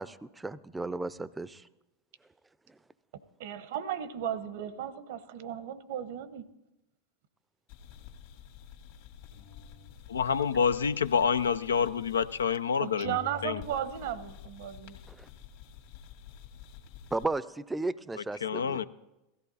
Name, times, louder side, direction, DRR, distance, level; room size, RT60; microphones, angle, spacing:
voice 1, 0.0-1.7 15.1-15.3 17.1-18.8, right 2 dB, 10° right, 0.6 m, -34 dB
voice 2, 3.4-6.5 12.8-15.0, right 10 dB, 65° right, 1.0 m, -35 dB
sound 1, 7.7-12.7 13.0-17.2, left 8 dB, 60° left, 2.0 m, -49 dB
voice 3, 10.1-13.2 13.4-13.6 18.4-18.8, left 6 dB, 85° left, 0.5 m, -27 dB
16.5 x 14.5 x 4.1 m
hypercardioid pair, 90°, 0 cm